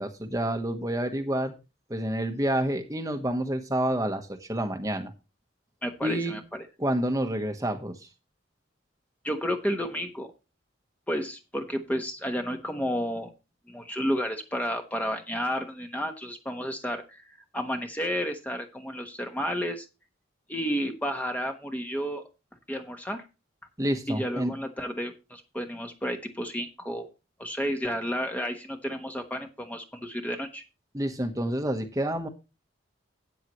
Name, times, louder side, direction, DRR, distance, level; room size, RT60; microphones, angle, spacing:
voice 1, 0.0-1.5 1.9-5.1 6.0-6.3 6.8-8.1 23.8-24.5 30.9-32.3, right 1 dB, 15° right, 6 dB, 1.1 m, -28 dB
voice 2, 5.8-6.4 9.2-10.3 11.1-13.3 13.7-19.9 20.5-22.2 22.7-23.2 24.1-27.1 27.4-30.6, equal, 10° left, 4 dB, 1.1 m, -31 dB
13.0 x 9.1 x 3.1 m, 0.29 s
head